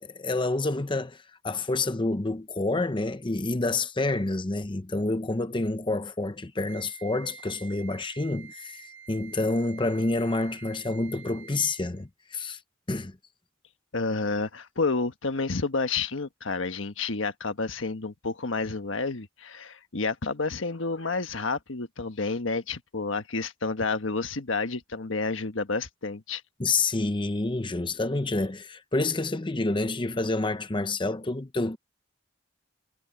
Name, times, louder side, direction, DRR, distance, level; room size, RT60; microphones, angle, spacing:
voice 1, 0.0-12.6 12.9-13.2 26.6-31.8, left 2 dB, 25° left, 0.8 m, -28 dB
Wind instrument woodwind instrument, 6.7-12.0, right 7 dB, 75° right, 6.3 m, -48 dB
voice 2, 13.9-26.4, left 3 dB, 80° left, 1.4 m, -30 dB
head